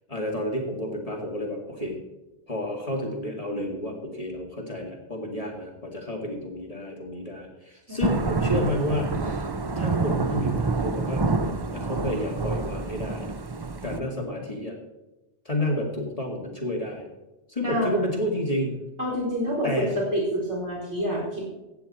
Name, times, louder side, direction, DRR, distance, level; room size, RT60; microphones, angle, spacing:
voice 1, 0.1-2.0 2.5-9.5 9.8-13.3 13.8-14.8 15.4-17.1 17.5-18.7 19.6-19.9, left 1 dB, 30° left, -1 dB, 2.2 m, -30 dB
voice 2, 7.9-8.4 17.6-18.1 19.0-19.7 19.9-21.5, equal, 85° right, -4 dB, 4.7 m, -28 dB
Thunder / Rain, 8.0-14.0, right 3 dB, 30° right, 0.5 m, -27 dB
15.0 x 9.4 x 4.3 m, 1.0 s
omnidirectional pair, 1.2 m